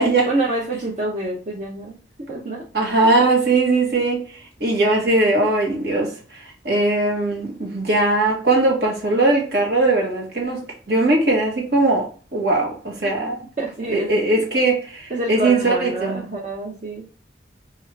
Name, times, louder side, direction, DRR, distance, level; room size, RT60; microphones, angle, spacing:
voice 1, 0.3-2.7 13.6-14.1 14.4-14.5 15.1-17.1, right 1 dB, 45° right, 0.7 m, -27 dB
voice 2, 2.7-4.2 4.6-13.4 13.9-16.2, right 2 dB, 65° right, 1.3 m, -20 dB
4.3 x 2.4 x 3.2 m
head